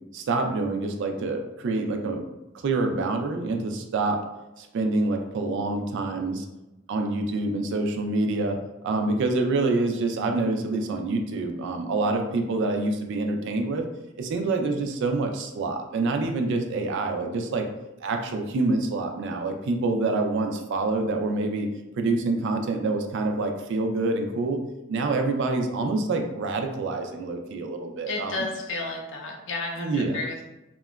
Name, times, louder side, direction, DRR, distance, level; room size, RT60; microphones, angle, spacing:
voice 1, 0.1-2.2 2.5-4.2 4.6-6.5 6.9-8.6 8.8-13.8 14.2-17.6 18.0-21.7 22.0-24.6 24.9-28.4 29.8-30.2, right 3 dB, 65° right, 4 dB, 0.3 m, -26 dB
voice 2, 28.1-30.4, left 2 dB, 65° left, 1 dB, 0.5 m, -32 dB
2.8 x 2.2 x 2.3 m, 0.99 s
head